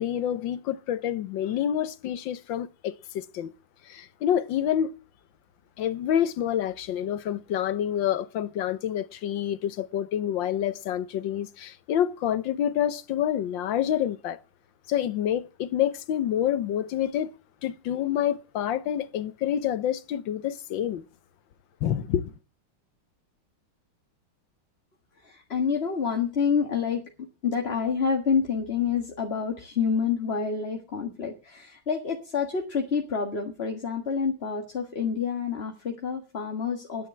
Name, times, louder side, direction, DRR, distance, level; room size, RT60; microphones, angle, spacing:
voice 1, 0.0-3.5 3.8-4.9 5.8-14.4 14.9-17.3 17.6-21.0 21.8-22.3, left 10 dB, 70° left, 1.5 m, -27 dB
voice 2, 25.2-37.1, left 6 dB, 30° left, 1.7 m, -28 dB
11.0 x 10.0 x 7.6 m
omnidirectional pair, 2.3 m